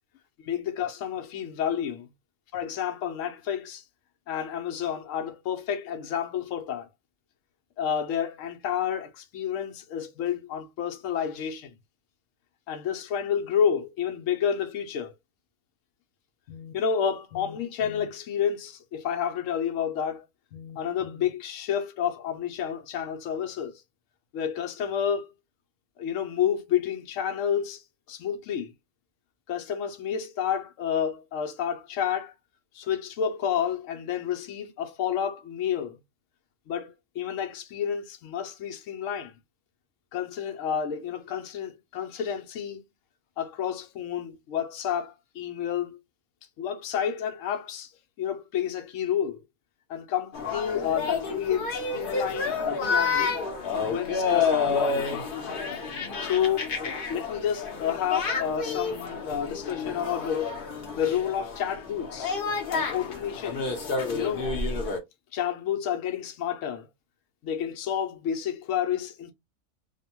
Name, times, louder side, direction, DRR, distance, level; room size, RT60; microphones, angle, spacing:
voice 1, 0.4-2.1 2.5-3.8 4.3-6.9 7.8-11.8 12.7-15.1 16.5-20.2 20.5-23.8 24.3-25.3 26.0-27.8 28.1-28.7 29.5-32.3 32.7-36.0 36.7-39.3 40.1-42.8 43.4-46.0 46.6-47.9 48.2-49.4 49.9-53.3 53.8-55.2 56.2-60.5 60.9-62.3 62.7-63.6 64.1-64.5 65.3-66.9 67.4-69.3, left 8 dB, 70° left, 0.9 m, -30 dB
sound 1, 50.3-65.0, left 5 dB, 50° left, 0.7 m, -29 dB
2.9 x 2.1 x 2.8 m
omnidirectional pair, 1.5 m